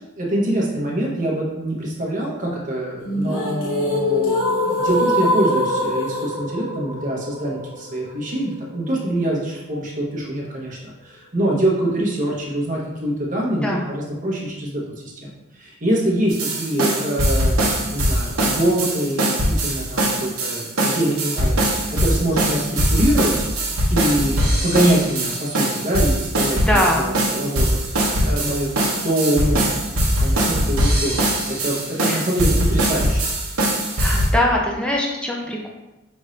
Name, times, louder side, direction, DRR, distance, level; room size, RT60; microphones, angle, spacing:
voice 1, 0.2-21.6 21.9-23.5 23.9-24.3 24.6-33.2, right 1 dB, 35° right, -3 dB, 0.9 m, -24 dB
sound 1, 3.1-9.1, left 1 dB, 70° left, 0.8 m, -23 dB
sound 2, 16.3-34.3, right 1 dB, 70° right, 0.9 m, -21 dB
voice 2, 26.6-27.2 32.1-32.2 34.0-35.7, left 1 dB, 5° left, -1 dB, 0.4 m, -22 dB
5.3 x 2.6 x 3.1 m, 1.0 s
head